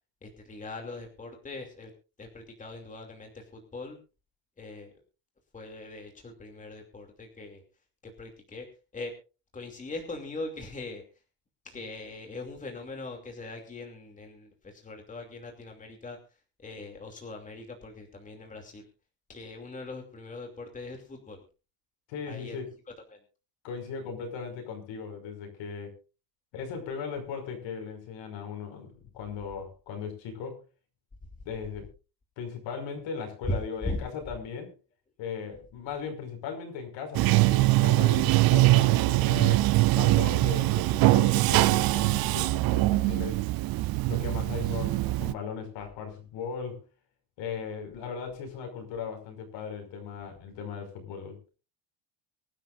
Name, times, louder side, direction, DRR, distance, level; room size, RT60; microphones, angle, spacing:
voice 1, 0.2-1.9 2.2-4.0 4.6-4.9 5.5-7.6 8.0-8.7 8.9-9.1 9.5-11.0 11.6-16.2 16.6-18.9 19.3-21.4 22.3-22.6 23.1-23.2 33.5-34.1, left 2 dB, 15° left, 3 dB, 2.8 m, -40 dB
voice 2, 22.1-22.7 23.6-26.0 26.5-30.6 31.4-31.9 32.4-34.7 35.2-43.5 44.1-46.8 47.4-51.4, left 6 dB, 65° left, 5 dB, 5.6 m, -38 dB
Bathtub (filling or washing), 37.1-45.3, right 19 dB, 50° right, 0.6 m, -23 dB
24.5 x 12.0 x 2.6 m, 0.32 s
cardioid pair, 160°, 48 cm